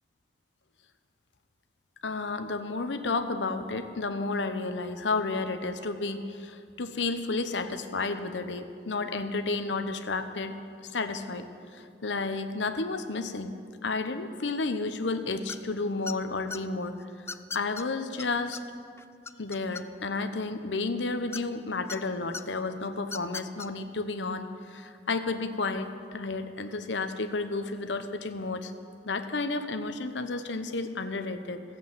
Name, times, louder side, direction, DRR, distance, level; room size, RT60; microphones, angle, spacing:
voice 1, 2.0-10.6 10.9-11.5 11.7-13.5 13.8-16.9 17.5-18.6 19.4-28.7 29.0-31.6, left 3 dB, 90° left, 8 dB, 0.9 m, -31 dB
sound 1, 15.5-15.7 16.1-16.6 17.3-17.8 18.2-18.3 18.5-18.6 19.0-20.1 21.3-22.0 22.3-22.4 23.0-23.7, left 5 dB, 15° left, 0.3 m, -37 dB
15.0 x 8.0 x 7.9 m, 2.3 s
head